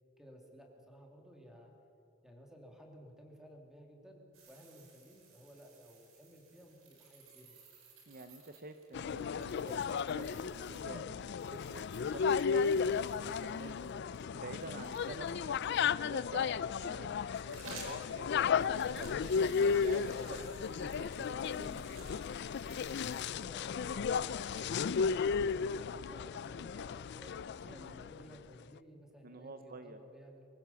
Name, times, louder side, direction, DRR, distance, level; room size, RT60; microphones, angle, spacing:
voice 1, 0.2-1.7 2.2-4.2 4.5-7.5 23.0-30.4, equal, 5° right, 1 dB, 2.7 m, -56 dB
sound 1, 4.3-15.5 17.1-23.3, right 4 dB, 80° right, 4.3 m, -57 dB
voice 2, 8.1-13.9 14.3-22.2 27.7-28.0 29.2-30.0, right 2 dB, 45° right, 8 dB, 0.9 m, -49 dB
sound 2, 8.9-28.2, left 6 dB, 55° left, 0.4 m, -34 dB
24.0 x 15.5 x 7.1 m, 2.9 s
head